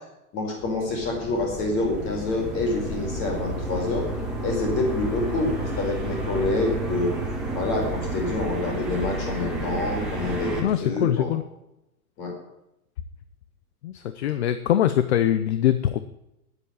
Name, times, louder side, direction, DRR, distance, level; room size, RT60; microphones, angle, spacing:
voice 1, 0.3-4.1 4.4-7.1 7.5-11.3 12.2-12.3, left 2 dB, 30° left, 1 dB, 4.7 m, -27 dB
sound 1, 0.6-10.6, right 1 dB, ahead, 2.1 m, -31 dB
voice 2, 10.6-11.4 13.8-16.0, left 11 dB, 45° left, 12 dB, 0.7 m, -23 dB
10.0 x 8.9 x 8.6 m, 0.88 s
hypercardioid pair, 155°, 45 cm